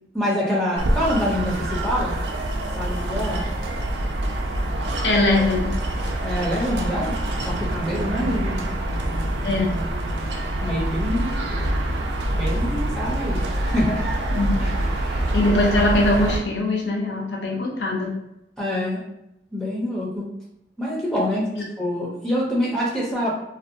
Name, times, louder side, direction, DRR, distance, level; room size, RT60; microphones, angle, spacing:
voice 1, 0.1-2.1 2.7-3.5 6.2-8.7 9.8-10.0 10.6-11.3 12.3-14.1 14.6-15.3 18.6-19.0 19.5-20.3 20.8-21.5 21.8-23.3, equal, 5° left, -5 dB, 0.5 m, -26 dB
sound 1, 0.8-16.4, right 1 dB, 85° right, 0.4 m, -25 dB
voice 2, 5.0-5.7 9.4-9.7 11.6-11.7 14.4-14.9 15.3-18.1 21.6-21.7, left 2 dB, 80° left, -1 dB, 0.6 m, -22 dB
2.5 x 2.1 x 2.6 m, 0.85 s
head